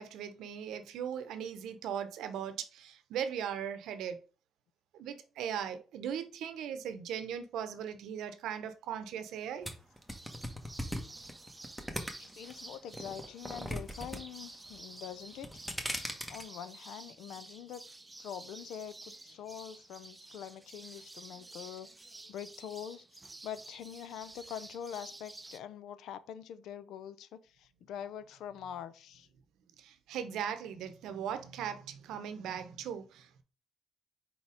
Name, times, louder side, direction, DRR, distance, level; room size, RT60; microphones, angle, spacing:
voice 1, 0.0-4.2 4.9-9.7 29.8-33.4, right 8 dB, 85° right, 0.8 m, -39 dB
sound 1, 9.6-12.5 12.9-14.2 14.5-14.9 15.3-16.4, equal, 5° left, 1.2 m, -38 dB
sparrows berlin, 10.1-25.6, right 2 dB, 20° right, 0.6 m, -51 dB
voice 2, 12.2-15.7 16.3-17.8 18.2-23.0 23.4-29.3, left 9 dB, 80° left, 0.5 m, -44 dB
4.6 x 4.2 x 4.9 m
cardioid pair, 90°, 0 cm